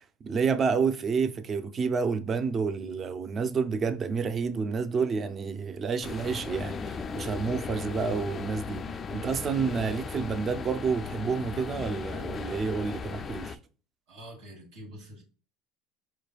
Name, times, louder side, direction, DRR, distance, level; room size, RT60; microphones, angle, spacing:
voice 1, 0.2-8.8 9.1-13.6, right 5 dB, 35° right, 0.4 m, -29 dB
sound 1, 6.0-13.6, left 5 dB, 35° left, 0.3 m, -37 dB
voice 2, 14.1-15.2, equal, 75° right, 1.2 m, -46 dB
4.6 x 3.1 x 2.3 m
supercardioid pair, 95°, 0 cm